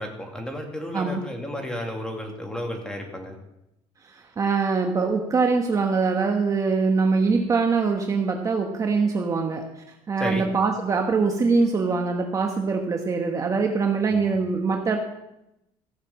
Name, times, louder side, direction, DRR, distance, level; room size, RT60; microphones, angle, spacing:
voice 1, 0.0-3.4 10.2-10.5 14.1-14.3, left 1 dB, 5° left, 2 dB, 2.4 m, -32 dB
voice 2, 4.1-15.0, right 4 dB, 30° right, 3 dB, 1.2 m, -23 dB
15.0 x 6.8 x 7.2 m, 0.86 s
cardioid pair, 135°, 11 cm